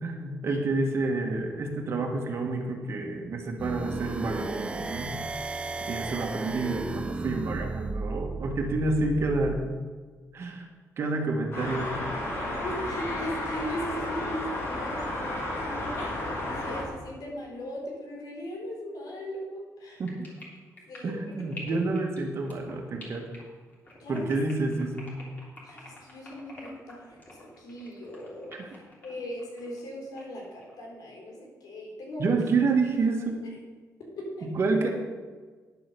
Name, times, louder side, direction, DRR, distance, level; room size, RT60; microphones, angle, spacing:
voice 1, 0.0-5.1 5.9-9.6 10.3-10.6 11.0-12.0 20.0-20.3 21.0-23.3 24.1-25.2 28.6-28.7 32.2-33.4 34.4-34.9, right 3 dB, 45° right, 2 dB, 1.7 m, -29 dB
sound 1, 3.6-9.5, right 3 dB, 15° right, 0.4 m, -34 dB
sound 2, 11.5-16.8, left 1 dB, 40° left, 3.2 m, -32 dB
voice 2, 12.6-15.3 15.6-16.2 16.5-20.0 20.9-21.3 21.6-21.8 24.0-24.2 25.6-32.3 34.2-34.5, equal, 90° left, -1 dB, 4.0 m, -39 dB
sound 3, 19.9-29.8 30.2-30.9, left 2 dB, 25° left, 3.3 m, -48 dB
10.0 x 7.8 x 7.0 m, 1.4 s
wide cardioid pair, 170°, 6 cm